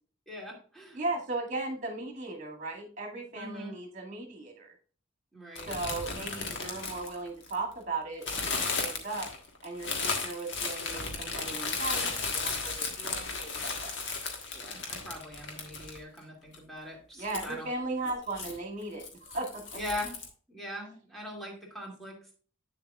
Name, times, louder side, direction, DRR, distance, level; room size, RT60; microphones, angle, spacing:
voice 1, 0.3-1.0 3.3-3.7 5.3-5.7 14.5-17.7 19.7-20.2 20.5-22.3, left 1 dB, ahead, -2 dB, 2.4 m, -41 dB
voice 2, 0.9-4.7 5.7-9.3 9.6-13.4 13.6-13.9 17.2-19.0 19.3-19.8, right 2 dB, 40° right, 1 dB, 2.1 m, -37 dB
sound 1, 5.6-7.7 8.2-16.2 16.5-16.6 17.2-17.5 18.0-18.6 19.0-20.3, left 4 dB, 60° left, 1.5 m, -35 dB
8.7 x 7.1 x 2.4 m, 0.41 s
head